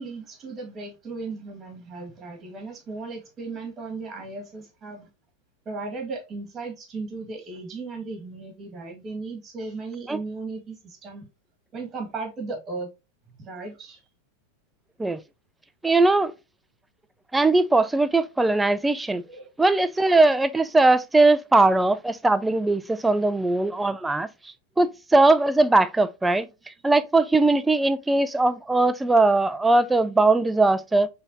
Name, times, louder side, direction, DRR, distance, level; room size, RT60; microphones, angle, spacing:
voice 1, 0.0-5.1 5.7-11.2 11.7-12.9 13.4-14.0 19.3-19.5 23.1-23.2, right 3 dB, 30° right, 2.0 m, -36 dB
voice 2, 15.8-16.3 17.3-19.2 19.6-24.3 24.8-26.5 26.8-31.1, right 2 dB, 10° right, 0.4 m, -20 dB
5.2 x 3.3 x 2.8 m
hypercardioid pair, 105°, 0 cm